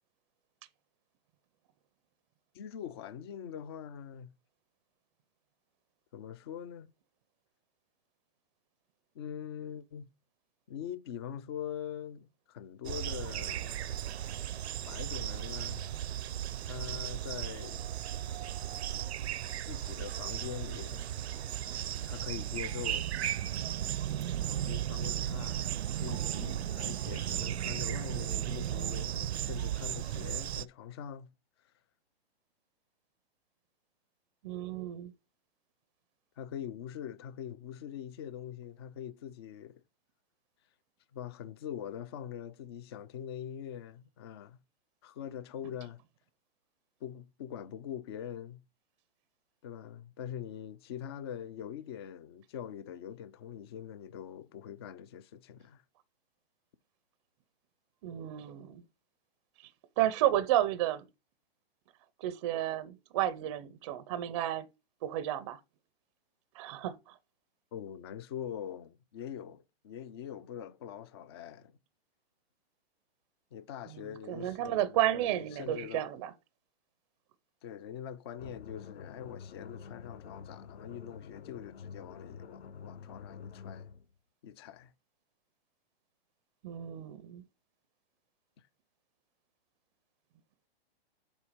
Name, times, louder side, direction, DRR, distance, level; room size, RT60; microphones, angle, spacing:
voice 1, 2.5-4.3 6.1-6.9 9.1-10.1 10.7-13.9 14.9-15.9 16.6-17.9 19.6-21.1 22.0-23.1 24.5-25.7 25.9-31.3 36.4-39.8 41.1-44.6 45.0-46.0 47.0-48.6 49.6-55.8 67.7-71.7 73.5-76.1 77.6-83.9 84.4-84.9 88.6-88.7, left 9 dB, 25° left, 0.4 m, -43 dB
sound 1, 12.8-30.6, right 11 dB, 80° right, 0.6 m, -35 dB
voice 2, 34.4-35.1 58.0-58.8 60.0-61.0 62.2-64.6 65.0-65.6 66.6-67.1 74.3-76.3 86.6-87.4, right 12 dB, 30° right, 0.5 m, -32 dB
sound 2, 78.4-84.0, left 6 dB, 75° left, 0.8 m, -48 dB
7.2 x 4.5 x 5.0 m
hypercardioid pair, 150°, 32 cm